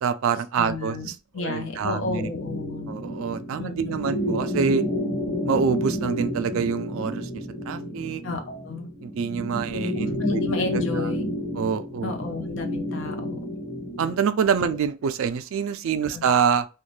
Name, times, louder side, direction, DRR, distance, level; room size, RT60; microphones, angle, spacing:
voice 1, 0.0-2.3 2.9-4.8 5.4-8.2 9.0-10.4 10.7-11.1 11.5-12.1 14.0-16.7, right 6 dB, 65° right, 0.3 m, -26 dB
voice 2, 0.6-2.9 3.6-4.2 8.2-8.9 10.2-11.3 12.0-13.6 16.1-16.2, left 3 dB, 60° left, 0.6 m, -32 dB
sound 1, 1.8-14.2, left 1 dB, 45° left, 1.1 m, -30 dB
2.5 x 2.2 x 3.1 m
head